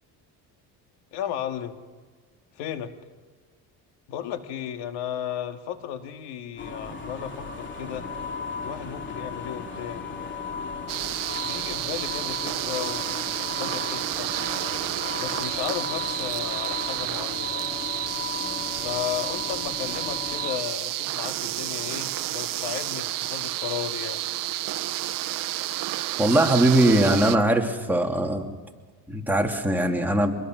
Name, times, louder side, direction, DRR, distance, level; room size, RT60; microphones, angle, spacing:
voice 1, 1.1-1.8 2.5-2.9 4.1-8.1 8.6-10.1 11.4-13.2 13.6-14.3 15.2-17.6 18.8-24.3, left 10 dB, 85° left, 7 dB, 2.0 m, -34 dB
sound 1, 6.6-20.6, left 5 dB, 30° left, 3.0 m, -35 dB
sound 2, 10.9-27.4, right 15 dB, 55° right, 0.8 m, -30 dB
voice 2, 26.2-28.5 29.1-30.4, right 1 dB, 5° right, 1 dB, 2.8 m, -21 dB
25.5 x 21.5 x 6.3 m, 1.4 s
cardioid pair, 115°, 39 cm